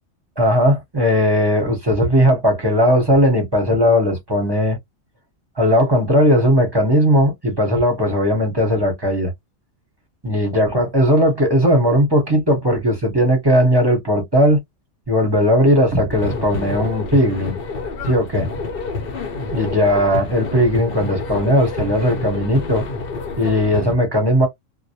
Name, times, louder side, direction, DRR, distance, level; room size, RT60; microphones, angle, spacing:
voice 1, 0.4-4.8 5.6-9.3 10.2-14.6 15.1-17.6 18.1-18.5 19.5-22.9 23.4-24.5, equal, 25° right, 0.8 m, -17 dB
sound 1, 16.1-23.9, left 3 dB, 60° left, 0.7 m, -28 dB
2.1 x 2.0 x 2.8 m
omnidirectional pair, 1.3 m